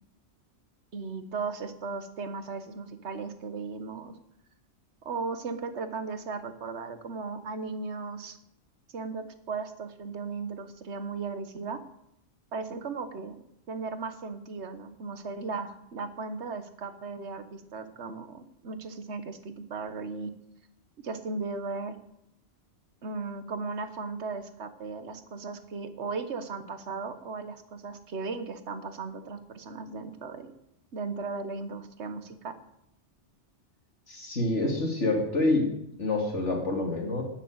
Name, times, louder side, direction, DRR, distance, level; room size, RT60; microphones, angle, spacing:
voice 1, 0.9-4.1 5.0-8.4 8.9-11.8 12.5-13.4 13.7-20.3 21.0-22.0 23.0-30.5 30.9-32.6, right 4 dB, 75° right, 10 dB, 1.5 m, -36 dB
voice 2, 34.1-35.7 36.0-37.2, left 2 dB, 85° left, 1 dB, 3.1 m, -27 dB
13.0 x 7.5 x 9.0 m, 0.79 s
omnidirectional pair, 1.2 m